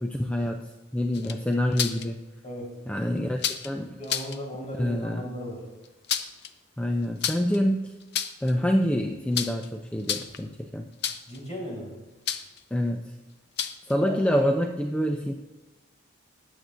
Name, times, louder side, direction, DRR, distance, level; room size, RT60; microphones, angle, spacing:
voice 1, 0.0-2.2 2.9-4.0 4.8-5.3 6.8-7.9 8.4-10.9 12.7-13.1 13.8-15.3, equal, 5° left, 4 dB, 0.3 m, -26 dB
sound 1, 1.1-2.1 3.4-3.7 4.0-4.4 5.8-6.5 7.2-7.6 8.0-8.5 9.3-9.7 10.0-10.5 11.0-11.4 12.3-12.6 13.6-13.9, left 8 dB, 55° left, 0.6 m, -30 dB
voice 2, 4.0-5.6 11.3-11.9 14.0-14.1, equal, 35° left, -4 dB, 3.8 m, -36 dB
20.5 x 8.0 x 2.5 m, 1.1 s
head